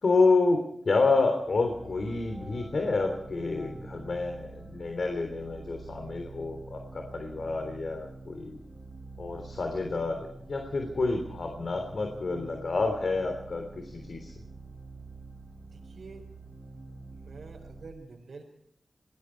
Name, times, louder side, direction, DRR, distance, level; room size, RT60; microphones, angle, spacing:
voice 1, 0.0-8.6 9.2-10.2 10.5-14.3, left 3 dB, 60° left, 4 dB, 3.4 m, -28 dB
sound 1, 1.4-17.9, right 3 dB, 10° right, 4.9 m, -46 dB
voice 2, 15.7-16.2 17.1-18.4, right 4 dB, 75° right, -2 dB, 4.5 m, -47 dB
27.0 x 20.5 x 4.7 m, 0.71 s
wide cardioid pair, 110°, 0 cm